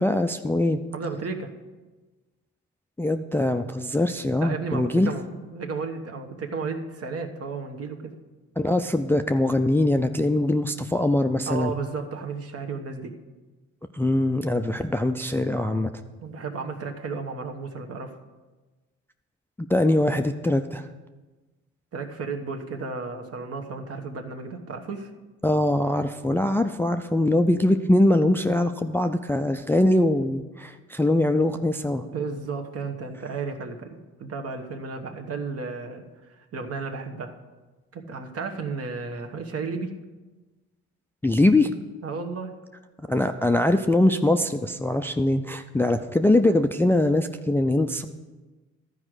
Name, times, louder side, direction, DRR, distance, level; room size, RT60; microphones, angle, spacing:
voice 1, 0.0-0.8 3.0-5.1 8.6-11.7 13.9-15.9 19.7-20.9 25.4-32.1 41.2-41.7 43.1-48.0, left 1 dB, 10° left, 7 dB, 0.4 m, -22 dB
voice 2, 0.9-1.5 4.4-8.1 11.5-13.1 16.2-18.2 21.9-25.1 32.0-37.4 37.9-39.9 42.0-42.5, right 4 dB, 55° right, 4 dB, 1.2 m, -33 dB
12.0 x 4.9 x 6.3 m, 1.2 s
cardioid pair, 90°, 30 cm